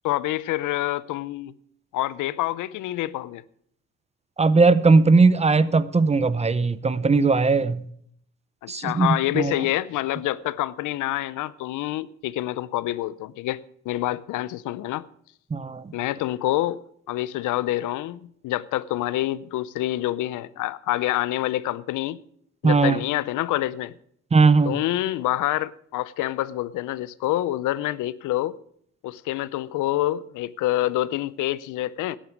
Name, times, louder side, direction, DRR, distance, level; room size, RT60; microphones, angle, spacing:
voice 1, 0.0-1.5 1.9-3.4 8.6-13.6 13.9-15.1 15.9-22.2 22.6-23.9 24.6-28.6 29.0-32.2, left 15 dB, 85° left, 0.6 m, -27 dB
voice 2, 4.4-7.8 8.7-9.6 15.5-15.8 22.6-23.0 24.3-24.7, right 4 dB, 20° right, 0.6 m, -19 dB
12.0 x 10.0 x 6.0 m
cardioid pair, 90°, 30 cm